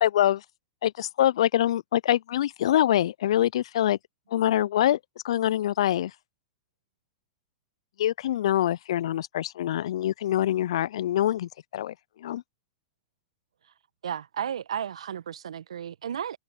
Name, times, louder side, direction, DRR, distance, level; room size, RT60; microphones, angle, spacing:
voice 1, 0.0-0.4 0.8-4.0 4.3-5.0 5.2-6.1 8.0-12.4, left 12 dB, 65° left, 0.4 m, -25 dB
voice 2, 14.0-16.4, right 9 dB, 75° right, 1.4 m, -33 dB
hypercardioid pair, 100°, 3 cm